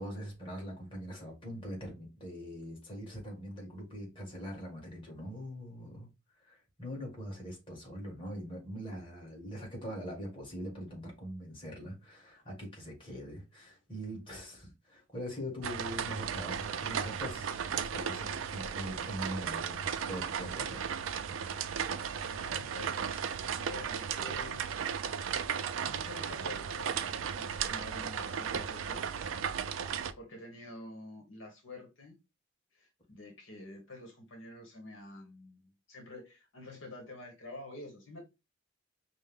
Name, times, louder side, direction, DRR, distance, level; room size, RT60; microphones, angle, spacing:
voice 1, 0.0-6.1 6.4-20.9, equal, 25° left, 1.8 m, -42 dB
sound 1, 15.6-30.1, right 7 dB, 90° right, 0.4 m, -35 dB
voice 2, 22.3-23.3 23.5-24.7 25.7-27.1 27.3-29.3 30.2-32.2 32.7-38.2, left 2 dB, 75° left, 1.1 m, -48 dB
5.3 x 2.1 x 3.6 m
head